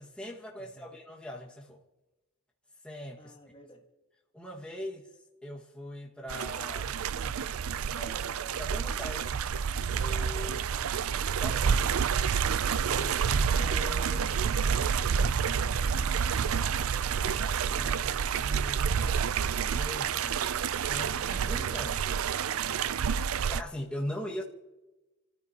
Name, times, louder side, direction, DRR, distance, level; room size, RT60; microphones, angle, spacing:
voice 1, 0.0-1.8 2.8-3.3 4.3-5.0 5.4-7.0 7.9-9.4 9.9-10.6 11.4-11.8 12.8-15.9 17.0-19.3 19.7-20.5 20.9-22.1 23.5-24.4, left 1 dB, 5° left, 1.8 m, -41 dB
voice 2, 0.6-0.9 3.2-3.9 10.4-10.7 15.7-16.5, left 1 dB, 25° left, 1.7 m, -56 dB
sound 1, 6.3-23.6, right 7 dB, 75° right, 0.5 m, -29 dB
29.0 x 14.5 x 2.9 m
head